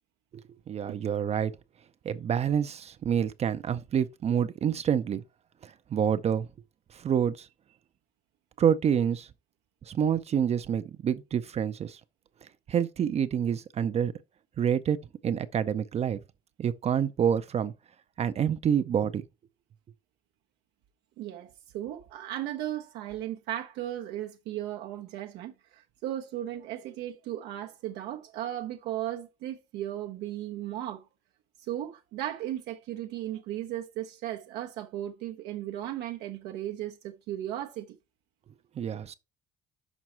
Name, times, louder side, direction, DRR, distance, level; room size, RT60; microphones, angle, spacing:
voice 1, 0.3-1.5 2.0-5.2 5.6-6.5 6.9-7.5 8.6-9.3 9.9-12.0 12.7-14.1 14.6-15.0 15.2-16.2 16.6-17.7 18.2-19.2 38.8-39.1, right 8 dB, 40° right, 0.5 m, -27 dB
voice 2, 21.2-31.1 31.6-38.0, right 12 dB, 85° right, 0.7 m, -36 dB
6.1 x 5.2 x 4.3 m
cardioid pair, 110°, 17 cm